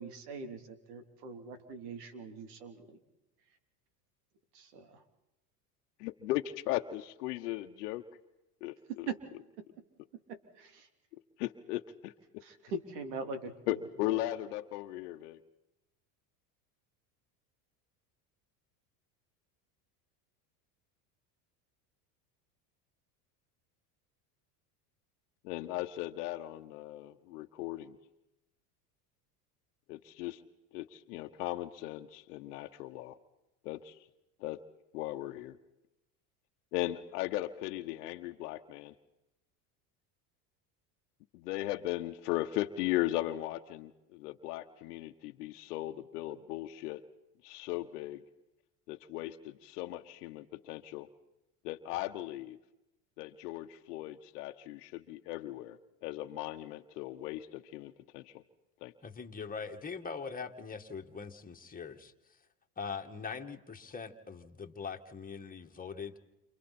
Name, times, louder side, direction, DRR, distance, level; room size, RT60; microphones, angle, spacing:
voice 1, 0.0-3.0 4.5-5.0 9.1-9.2 10.6-10.9 12.4-13.5 14.0-14.2, right 3 dB, 80° right, 6 dB, 3.5 m, -42 dB
voice 2, 6.0-8.0 8.6-9.1 11.4-12.1 13.7-15.4 25.4-28.0 29.9-30.4 30.7-33.2 33.6-34.0 34.4-34.6 34.9-35.6 36.7-38.9 41.3-47.0 47.4-48.2 48.9-51.1 51.6-52.6 53.2-58.4 58.8-58.9, left 16 dB, 80° left, 5 dB, 1.2 m, -37 dB
voice 3, 59.0-62.1 62.8-66.2, left 5 dB, 20° left, 4 dB, 2.1 m, -42 dB
29.5 x 27.5 x 4.4 m, 0.94 s
supercardioid pair, 100°, 46 cm